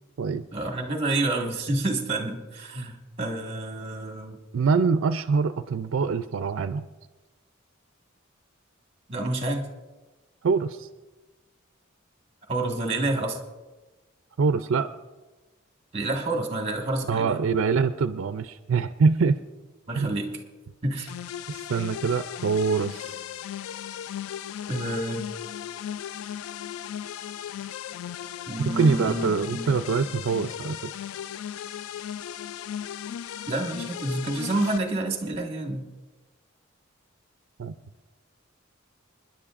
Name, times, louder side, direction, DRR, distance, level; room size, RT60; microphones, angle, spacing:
voice 1, 0.5-4.4 9.1-9.7 12.5-13.4 15.9-17.4 19.9-20.4 20.8-21.1 24.7-25.3 28.5-29.2 29.5-29.7 33.5-35.9, right 2 dB, 30° right, 2 dB, 1.7 m, -28 dB
voice 2, 4.5-6.9 10.4-10.9 14.4-14.9 17.1-19.4 20.0-20.2 21.5-23.2 28.8-30.9 37.6-37.7, right 5 dB, 70° right, 10 dB, 0.4 m, -24 dB
sound 1, 21.1-34.8, left 10 dB, 90° left, 0.3 m, -36 dB
29.0 x 10.5 x 2.5 m, 1.2 s
head